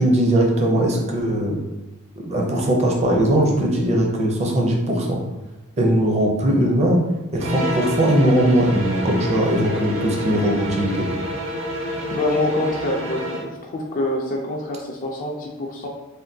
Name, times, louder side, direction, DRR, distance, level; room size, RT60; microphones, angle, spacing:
voice 1, 0.0-1.6 2.2-5.2 5.8-7.0 7.3-11.1, right 1 dB, 30° right, 0 dB, 0.5 m, -19 dB
sound 1, 7.4-13.5, equal, 70° right, 0.6 m, -28 dB
voice 2, 12.1-15.9, left 1 dB, 40° left, 0 dB, 0.4 m, -25 dB
3.5 x 2.1 x 2.6 m, 1.1 s
head